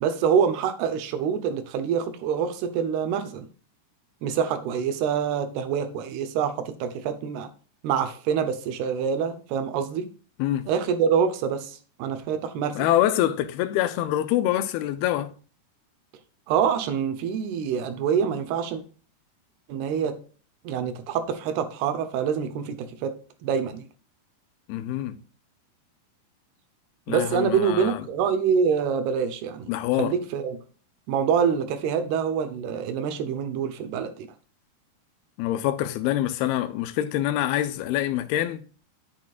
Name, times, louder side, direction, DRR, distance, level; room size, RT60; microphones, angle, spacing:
voice 1, 0.0-3.5 4.2-7.5 7.8-10.1 10.7-12.9 16.5-18.8 19.7-20.2 20.6-23.8 27.1-29.7 30.0-30.6 31.1-34.3, right 7 dB, 80° right, 2.9 m, -26 dB
voice 2, 12.8-15.3 24.7-25.2 27.1-28.0 29.7-30.1 35.4-38.6, left 13 dB, 80° left, 2.6 m, -25 dB
10.5 x 8.5 x 2.4 m
omnidirectional pair, 4.8 m